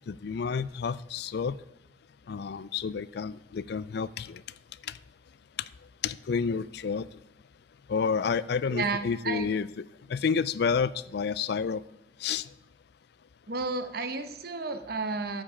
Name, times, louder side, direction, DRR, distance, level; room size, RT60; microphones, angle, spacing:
voice 1, 0.1-1.6 2.3-4.4 6.0-7.1 7.9-9.8 10.1-11.8 12.2-12.5, left 6 dB, 60° left, 18 dB, 0.4 m, -30 dB
voice 2, 8.7-9.5 13.5-15.4, right 3 dB, 55° right, 9 dB, 1.0 m, -32 dB
13.5 x 5.4 x 4.9 m, 0.92 s
head